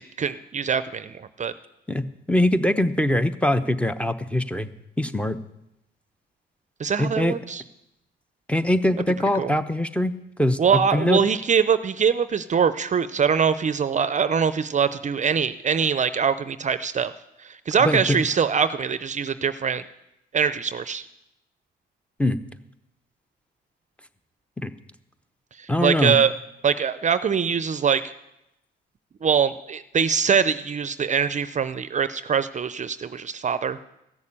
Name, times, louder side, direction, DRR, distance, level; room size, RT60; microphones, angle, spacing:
voice 1, 0.0-1.5 6.8-7.6 9.4-9.5 10.6-17.1 17.4-19.8 20.3-21.1 25.6-26.3 26.6-28.0 29.2-33.8, right 6 dB, 40° right, 14 dB, 0.6 m, -23 dB
voice 2, 1.9-4.7 5.0-5.4 7.0-7.4 8.5-10.1 10.4-11.2 17.8-18.2 22.2-22.4 24.6-24.7 25.7-26.2, left 1 dB, 5° left, 11 dB, 0.8 m, -22 dB
14.5 x 6.6 x 8.6 m, 0.86 s
cardioid pair, 90°, 20 cm